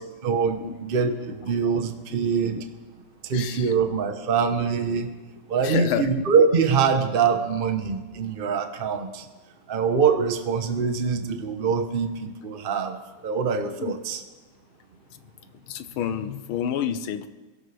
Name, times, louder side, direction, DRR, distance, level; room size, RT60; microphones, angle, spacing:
voice 1, 0.2-2.6 3.2-5.1 5.5-9.3 9.7-14.2, right 6 dB, 35° right, 6 dB, 1.0 m, -24 dB
voice 2, 3.3-3.7 5.6-6.1 13.8-13.9 15.7-17.3, left 9 dB, 90° left, 11 dB, 1.7 m, -29 dB
23.0 x 17.0 x 3.4 m, 1.2 s
omnidirectional pair, 2.2 m